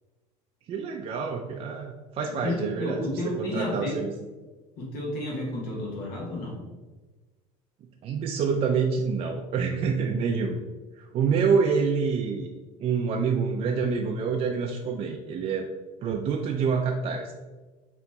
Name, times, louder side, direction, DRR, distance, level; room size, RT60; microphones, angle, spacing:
voice 1, 0.7-4.1 8.0-10.6 11.0-12.5 12.8-15.7 16.0-17.3, right 5 dB, 35° right, 2 dB, 0.4 m, -27 dB
voice 2, 2.4-4.0 4.8-6.6, left 1 dB, 60° left, -3 dB, 1.3 m, -31 dB
4.0 x 3.0 x 3.4 m, 1.3 s
supercardioid pair, 120°, 17 cm